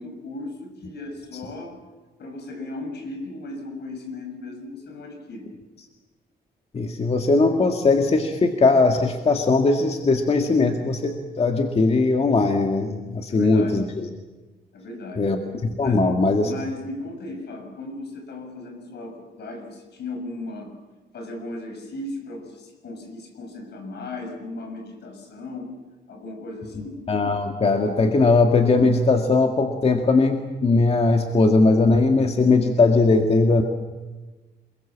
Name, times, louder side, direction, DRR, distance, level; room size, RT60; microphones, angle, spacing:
voice 1, 0.0-1.8 2.2-5.5 13.3-13.9 14.7-15.3 15.8-20.7 21.1-25.7 26.1-27.0, left 2 dB, 70° left, 5 dB, 6.3 m, -36 dB
voice 2, 6.7-14.1 15.2-16.5 27.1-33.6, left 3 dB, 35° left, 4 dB, 1.9 m, -19 dB
28.0 x 22.0 x 7.4 m, 1.2 s
cardioid pair, 135°, 18 cm